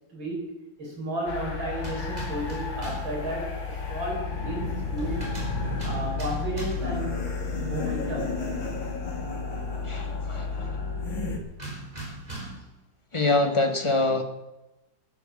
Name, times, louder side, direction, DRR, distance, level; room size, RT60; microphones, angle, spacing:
voice 1, 0.1-5.3 5.8-7.3 7.6-8.5, right 1 dB, 70° right, -2 dB, 6.3 m, -33 dB
Wind, 1.2-11.5, equal, 35° right, 4.9 m, -39 dB
sound 1, 1.3-11.4, left 4 dB, 70° left, 2.7 m, -32 dB
sound 2, 1.8-3.2 5.0-7.0 11.6-12.8, right 2 dB, 20° right, 3.9 m, -40 dB
voice 2, 9.8-10.5 13.1-14.2, left 2 dB, 15° left, 6 dB, 1.2 m, -24 dB
12.0 x 11.0 x 7.5 m, 1.0 s
omnidirectional pair, 2.2 m